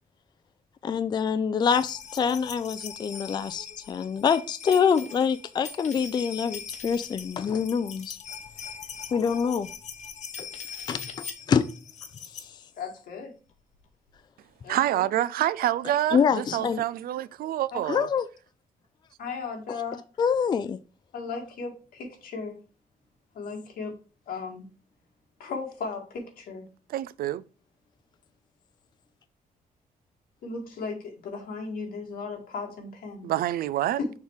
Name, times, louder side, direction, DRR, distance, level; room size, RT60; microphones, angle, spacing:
voice 1, 0.8-8.2 9.1-9.7 10.4-10.5 10.9-11.0 11.5-11.7 12.3-12.6 16.1-16.8 17.9-18.3 20.2-20.8, left 6 dB, 30° left, 0.3 m, -25 dB
sound 1, 1.7-12.5 13.5-13.6 13.8-13.9, left 6 dB, 50° left, 0.9 m, -41 dB
voice 2, 12.7-13.3 14.6-14.8 17.7-17.8 19.2-20.0 21.1-22.6 23.4-23.9 24.3-24.7 25.4-26.7 30.4-33.3 34.0-34.1, left 4 dB, 80° left, 1.9 m, -36 dB
voice 3, 14.7-18.1 26.9-27.4 33.2-34.0, right 13 dB, 80° right, 0.4 m, -27 dB
6.5 x 3.4 x 4.7 m
wide cardioid pair, 155°, 15 cm